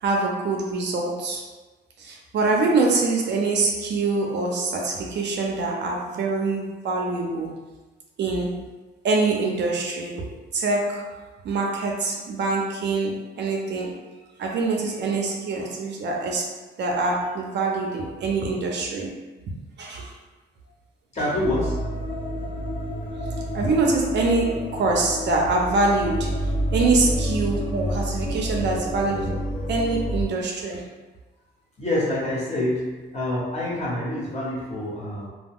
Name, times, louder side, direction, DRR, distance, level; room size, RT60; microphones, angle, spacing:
voice 1, 0.0-1.5 2.0-7.6 8.2-8.7 9.0-10.3 10.5-14.0 14.4-19.2 19.8-20.1 23.5-29.4 29.7-30.9, right 3 dB, 60° right, -1 dB, 0.6 m, -25 dB
voice 2, 21.1-22.0 31.8-35.3, left 1 dB, 35° left, -6 dB, 1.2 m, -27 dB
sound 1, 21.4-30.2, equal, 50° left, 0.7 m, -29 dB
2.2 x 2.2 x 3.5 m, 1.2 s
cardioid pair, 90°, 20 cm